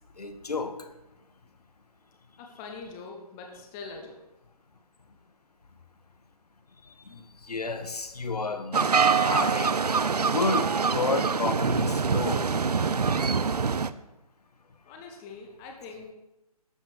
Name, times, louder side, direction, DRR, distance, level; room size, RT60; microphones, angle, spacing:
voice 1, 0.2-0.8 7.1-9.8 10.3-12.5, left 3 dB, 80° left, 8 dB, 1.7 m, -31 dB
voice 2, 2.4-4.2 14.8-16.1, left 4 dB, 5° left, 2 dB, 0.4 m, -43 dB
sound 1, 8.7-13.9, right 5 dB, 85° right, 0.7 m, -25 dB
11.5 x 8.1 x 6.4 m, 0.95 s
figure-of-eight pair, 155°, 20 cm